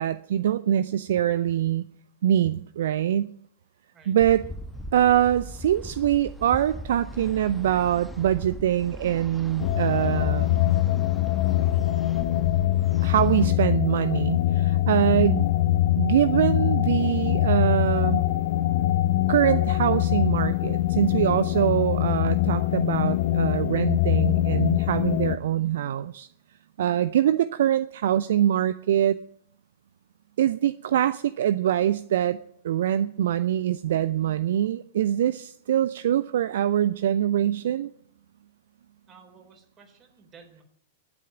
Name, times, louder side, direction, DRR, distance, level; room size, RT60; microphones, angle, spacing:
voice 1, 0.0-1.8 2.2-3.3 4.1-4.4 4.9-10.6 13.0-15.5 16.0-18.2 19.3-26.3 26.8-29.2 30.4-32.4 32.6-37.9, right 11 dB, 60° right, 15 dB, 0.5 m, -24 dB
sound 1, 4.2-13.5, equal, 5° left, 1.1 m, -39 dB
sound 2, 9.6-25.4, left 14 dB, 50° left, 0.6 m, -23 dB
voice 2, 39.1-40.6, right 5 dB, 30° right, 3 dB, 4.4 m, -53 dB
11.5 x 9.6 x 9.1 m, 0.66 s
figure-of-eight pair, 100°, 0 cm